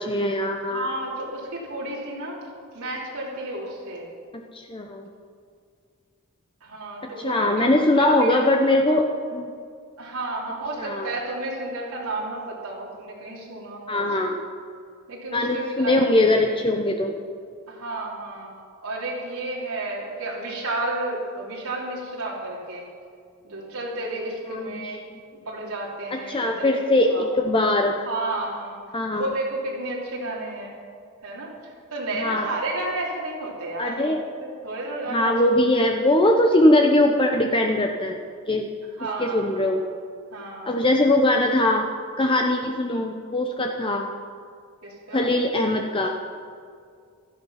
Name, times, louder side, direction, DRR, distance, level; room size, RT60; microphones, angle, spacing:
voice 1, 0.0-0.9 4.5-5.1 7.2-9.1 9.3-9.5 10.8-11.1 13.9-14.4 15.3-17.1 24.5-25.2 26.1-27.9 28.9-29.3 32.2-32.5 33.8-34.2 35.1-38.2 38.5-38.7 39.2-39.8 40.6-41.9 42.2-44.1 45.1-46.1, left 1 dB, 25° left, 3 dB, 0.8 m, -21 dB
voice 2, 0.7-2.4 2.7-4.1 6.6-7.7 8.0-8.4 8.7-8.8 10.0-14.1 15.1-16.5 17.7-18.5 18.8-22.9 23.4-25.0 25.3-27.2 28.0-28.8 29.1-30.7 31.2-35.3 35.8-35.9 39.0-39.7 40.3-40.7 44.8-45.3, right 2 dB, 85° right, -4 dB, 3.3 m, -32 dB
16.5 x 12.5 x 5.8 m, 2.2 s
head